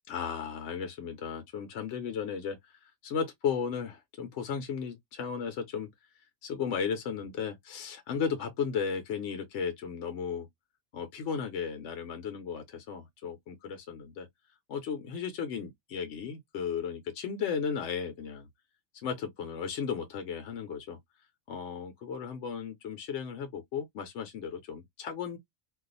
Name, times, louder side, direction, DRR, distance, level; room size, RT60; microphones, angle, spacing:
voice 1, 0.1-5.9 6.4-10.5 10.9-14.3 14.7-18.5 18.9-21.0 21.5-25.4, left 6 dB, 65° left, 0.9 m, -35 dB
2.4 x 2.3 x 3.9 m
omnidirectional pair, 1.4 m